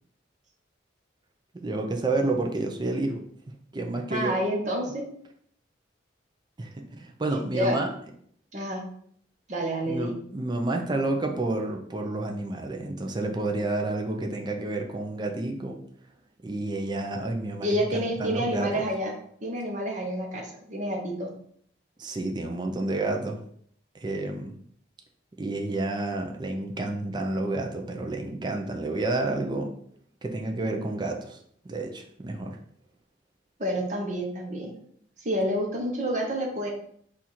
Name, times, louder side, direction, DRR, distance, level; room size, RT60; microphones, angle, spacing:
voice 1, 1.5-3.2 3.7-4.3 6.6-7.9 9.9-15.8 16.4-18.8 22.0-23.4 23.9-24.5 25.4-29.7 30.2-31.4 31.6-32.6, right 2 dB, 25° right, 3 dB, 0.4 m, -30 dB
voice 2, 4.1-5.0 7.3-7.8 8.5-8.8 9.5-10.1 17.6-19.1 19.4-21.3 33.6-34.7 35.2-36.7, equal, 40° right, 1 dB, 0.9 m, -28 dB
4.3 x 2.5 x 4.2 m, 0.64 s
head